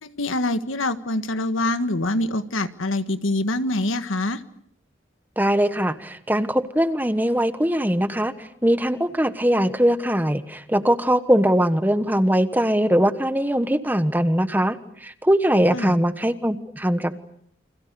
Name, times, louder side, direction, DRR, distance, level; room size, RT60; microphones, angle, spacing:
voice 1, 0.0-4.4 15.7-16.0, left 2 dB, 90° left, 10 dB, 1.6 m, -25 dB
voice 2, 5.4-8.3 8.6-14.8 15.0-17.2, equal, 10° right, 10 dB, 1.2 m, -21 dB
29.5 x 26.0 x 6.9 m, 0.67 s
head